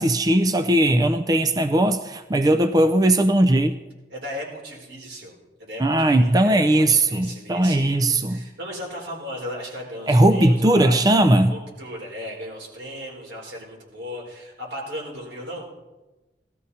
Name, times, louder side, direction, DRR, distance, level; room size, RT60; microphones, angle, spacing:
voice 1, 0.0-3.8 5.8-8.4 10.1-11.5, right 1 dB, 20° right, 10 dB, 0.4 m, -18 dB
voice 2, 4.1-11.1 11.5-15.6, equal, 80° right, -2 dB, 4.4 m, -36 dB
17.5 x 13.0 x 4.2 m, 1.1 s
head